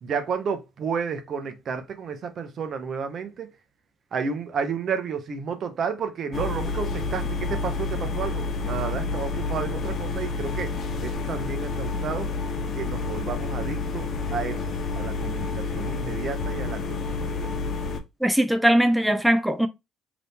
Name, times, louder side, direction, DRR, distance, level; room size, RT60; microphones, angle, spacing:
voice 1, 0.0-3.5 4.1-12.3 12.7-17.5, right 6 dB, 55° right, 0.7 m, -32 dB
sound 1, 6.3-18.0, left 3 dB, 55° left, 0.7 m, -29 dB
voice 2, 18.2-19.7, right 1 dB, ahead, 0.4 m, -20 dB
2.9 x 2.6 x 3.4 m
supercardioid pair, 70°, 0 cm